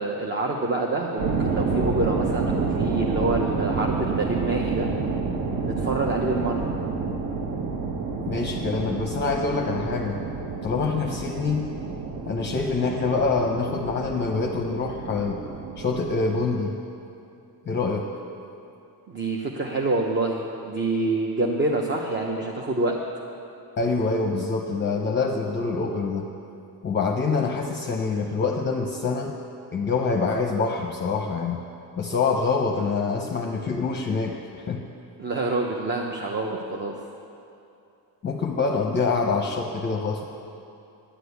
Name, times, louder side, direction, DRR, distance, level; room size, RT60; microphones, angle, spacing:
voice 1, 0.0-4.9 5.6-6.7 19.1-23.0 35.2-36.9, right 2 dB, 30° right, 0 dB, 0.7 m, -26 dB
sound 1, 1.2-16.4, right 4 dB, 55° right, 1.1 m, -29 dB
voice 2, 8.3-10.2 10.6-11.7 12.3-15.4 15.8-16.8 17.7-18.1 23.8-26.3 26.8-29.3 29.7-31.6 32.0-34.8 38.2-40.2, left 4 dB, 30° left, 2 dB, 0.6 m, -25 dB
10.0 x 9.8 x 8.2 m, 2.7 s
cardioid pair, 170°, 39 cm